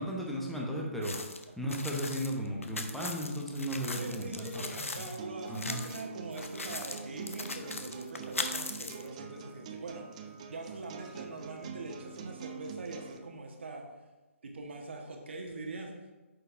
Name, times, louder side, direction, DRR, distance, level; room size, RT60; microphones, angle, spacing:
voice 1, 0.0-5.1 5.5-5.8, equal, ahead, -3 dB, 0.9 m, -36 dB
sound 1, 1.0-5.2 5.5-6.0 6.3-9.1, left 3 dB, 70° left, 0.7 m, -39 dB
voice 2, 3.9-13.8 14.4-15.9, right 2 dB, 50° right, 2 dB, 1.3 m, -42 dB
sound 2, 5.2-13.2, right 7 dB, 30° right, 0.5 m, -45 dB
9.0 x 6.6 x 2.6 m, 1.2 s
figure-of-eight pair, 140°, 8 cm